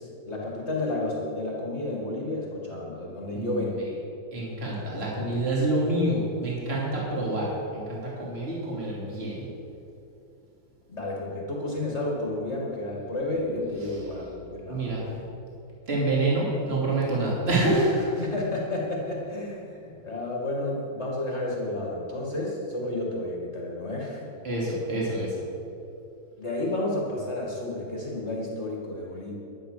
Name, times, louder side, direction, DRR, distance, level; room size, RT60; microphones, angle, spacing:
voice 1, 0.0-3.8 10.9-15.2 18.2-24.3 26.4-29.3, left 2 dB, 30° left, -3 dB, 2.3 m, -31 dB
voice 2, 3.3-3.8 4.3-9.5 14.7-15.0 15.9-18.2 24.4-25.4, right 1 dB, 30° right, -5 dB, 3.2 m, -27 dB
11.5 x 10.5 x 6.7 m, 2.7 s
omnidirectional pair, 2.3 m